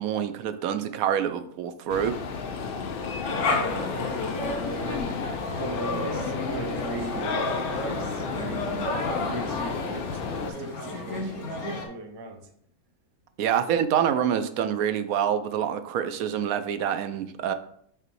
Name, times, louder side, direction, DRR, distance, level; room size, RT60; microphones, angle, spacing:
voice 1, 0.0-2.1 13.4-17.5, right 9 dB, 75° right, 1.0 m, -26 dB
sound 1, 1.9-10.5, left 4 dB, 55° left, 0.6 m, -32 dB
sound 2, 3.2-11.9, left 2 dB, 80° left, 1.6 m, -32 dB
voice 2, 4.3-5.2 5.6-12.5, right 2 dB, 40° right, 0.3 m, -39 dB
5.7 x 3.6 x 4.6 m
omnidirectional pair, 1.6 m